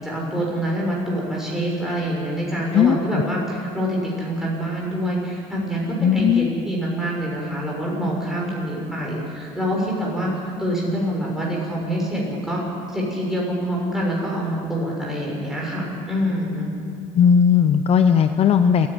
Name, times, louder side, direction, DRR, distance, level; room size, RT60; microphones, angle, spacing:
voice 1, 0.0-12.6 12.9-16.7, equal, 5° right, -3 dB, 6.3 m, -26 dB
voice 2, 6.0-6.5 17.1-18.9, left 7 dB, 40° left, 9 dB, 0.7 m, -16 dB
27.5 x 10.5 x 10.0 m, 2.4 s
cardioid pair, 145°, 16 cm